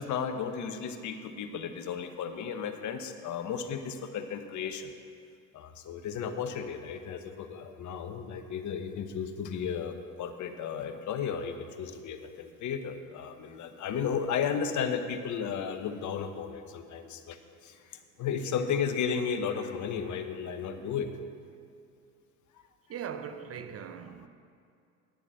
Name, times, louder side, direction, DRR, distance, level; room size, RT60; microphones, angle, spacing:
voice 1, 0.0-4.9 5.5-17.4 17.6-21.1, left 7 dB, 50° left, 1.0 m, -34 dB
voice 2, 22.9-24.3, right 7 dB, 35° right, 0.6 m, -40 dB
9.9 x 7.0 x 7.6 m
hypercardioid pair, 80°, 39 cm